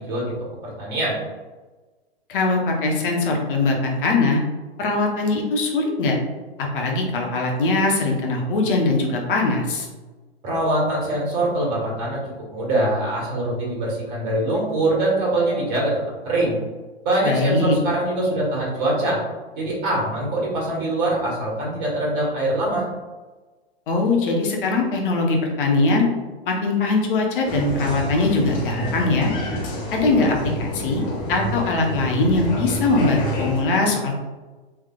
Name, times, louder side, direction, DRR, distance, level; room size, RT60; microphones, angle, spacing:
voice 1, 0.6-1.2 10.4-12.2 12.5-15.9 16.2-16.6 17.0-19.2 19.5-22.9, right 1 dB, 35° right, -4 dB, 1.4 m, -23 dB
voice 2, 2.3-4.4 4.8-6.2 6.6-9.9 17.2-17.8 23.9-26.1 26.5-29.3 29.9-31.0 31.3-34.2, left 3 dB, 55° left, 1 dB, 0.9 m, -21 dB
Applause, 27.4-33.6, equal, 35° left, 1.5 m, -28 dB
3.3 x 3.2 x 2.3 m, 1.3 s
hypercardioid pair, 115°, 32 cm